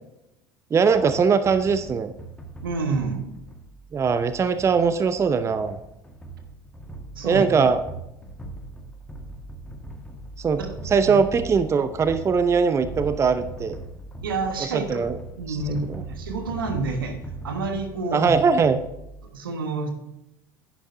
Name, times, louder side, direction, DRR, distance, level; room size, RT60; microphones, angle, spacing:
voice 1, 0.7-2.1 3.9-5.8 7.2-7.8 10.4-10.6 10.8-13.8 14.7-15.2 15.5-15.6 18.1-18.8, right 5 dB, 25° right, 11 dB, 0.6 m, -21 dB
sound 1, 0.9-19.3, right 2 dB, 10° left, 1.7 m, -40 dB
voice 2, 2.6-3.3 7.1-7.5 10.5-10.7 11.1-11.2 14.2-14.9 15.4-17.2 17.4-18.4 19.3-19.9, right 3 dB, 75° right, 5 dB, 1.5 m, -28 dB
10.0 x 10.0 x 2.7 m, 0.88 s
figure-of-eight pair, 70°, 12 cm